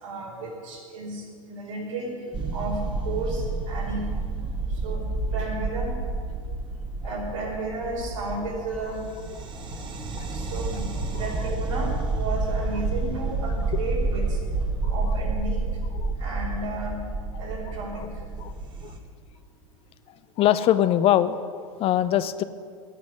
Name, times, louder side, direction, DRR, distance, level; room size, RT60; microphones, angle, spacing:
voice 1, 0.0-2.2 2.5-4.1 4.8-6.0 7.0-9.0 10.3-14.4 14.9-15.6 16.2-17.1 17.4-18.1, right 2 dB, 65° right, -2 dB, 4.5 m, -33 dB
sound 1, 2.3-19.0, right 3 dB, 25° right, 1.8 m, -29 dB
voice 2, 20.4-22.4, left 11 dB, 30° left, 13 dB, 0.6 m, -23 dB
17.5 x 6.1 x 9.7 m, 2.1 s
figure-of-eight pair, 90°, 18 cm